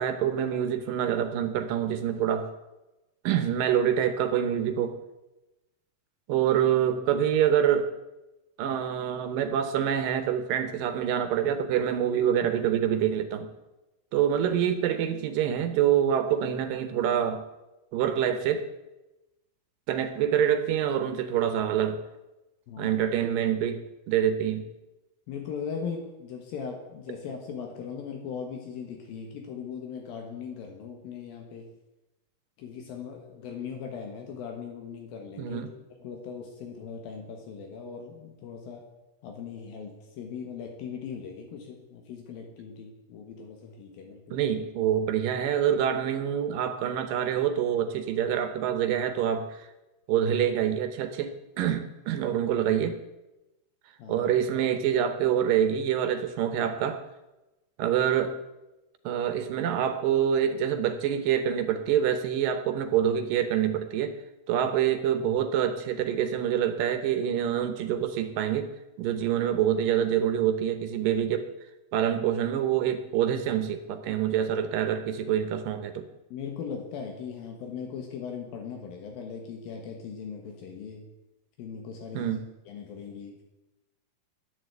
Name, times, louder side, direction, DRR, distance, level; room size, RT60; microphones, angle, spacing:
voice 1, 0.0-2.5 3.2-5.0 6.3-7.9 8.6-13.5 14.1-17.5 17.9-18.7 19.9-22.0 22.8-23.8 24.1-24.7 35.4-35.7 44.3-49.7 50.1-53.0 54.1-57.0 57.8-58.4 59.1-64.2 64.5-68.7 69.0-71.5 71.9-76.1 82.1-82.4, right 9 dB, 75° right, 10 dB, 2.4 m, -26 dB
voice 2, 22.7-23.0 25.3-31.7 32.6-35.7 36.0-38.9 39.2-44.4 54.0-54.6 76.3-81.0 81.6-82.4 82.7-83.4, left 6 dB, 80° left, 2 dB, 3.2 m, -39 dB
11.5 x 10.0 x 8.0 m, 1.0 s
omnidirectional pair, 4.2 m